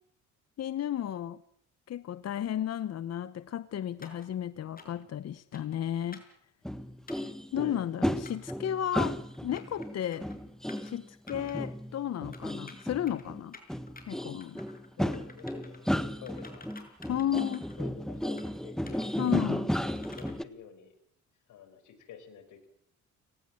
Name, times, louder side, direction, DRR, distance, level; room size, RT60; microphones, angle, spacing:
voice 1, 0.6-1.4 1.9-6.2 7.5-10.3 10.8-13.6 14.1-14.6 17.1-17.6 19.2-19.7, left 10 dB, 55° left, 15 dB, 0.9 m, -33 dB
sound 1, 4.0-4.3 4.8-5.1 5.5-5.8 6.1-6.4 7.1-7.3 8.3-8.5 9.3-9.9 10.1-10.4 10.7-10.9 11.3-11.6 12.3-13.2 13.5-14.0 14.4-14.9 15.1-15.8 16.3-17.8 18.2-18.5 18.9-20.3, left 3 dB, 30° left, 6.1 m, -51 dB
sound 2, 6.6-13.4 13.7-20.4, equal, ahead, 1.6 m, -34 dB
voice 2, 7.5-7.9 15.0-16.7 17.5-19.1 20.1-20.9 21.5-22.7, left 8 dB, 85° left, 11 dB, 4.8 m, -49 dB
30.0 x 18.5 x 7.7 m, 0.67 s
cardioid pair, 90°, 30 cm